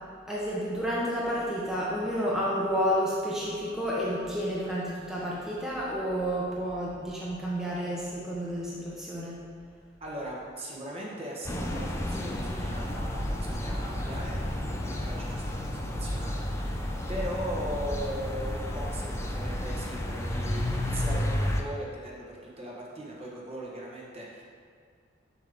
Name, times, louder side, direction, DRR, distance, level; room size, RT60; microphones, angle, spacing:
voice 1, 0.3-9.4, equal, 5° right, -7 dB, 0.8 m, -30 dB
voice 2, 10.0-24.4, equal, 30° right, -4 dB, 1.1 m, -39 dB
sound 1, 11.4-21.6, left 1 dB, 15° left, 0.5 m, -31 dB
7.2 x 5.4 x 3.5 m, 2.1 s
head